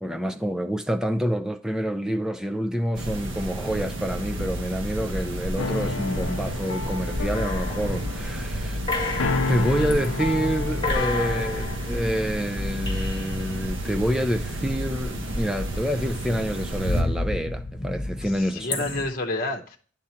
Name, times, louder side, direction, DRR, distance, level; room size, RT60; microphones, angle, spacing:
voice 1, 0.0-8.8 9.5-18.8, equal, 5° right, 0.4 m, -27 dB
sound 1, 2.9-17.0, equal, 70° right, 1.1 m, -31 dB
sound 2, 5.6-11.7, left 4 dB, 75° left, 0.6 m, -31 dB
sound 3, 7.3-8.3 8.9-10.1 10.5-10.6 10.8-13.5 14.8-15.6 16.0-19.1, left 2 dB, 25° left, 1.4 m, -32 dB
voice 2, 11.1-11.4 11.8-12.0 18.2-19.8, left 2 dB, 45° left, 0.9 m, -31 dB
9.8 x 3.7 x 4.3 m
head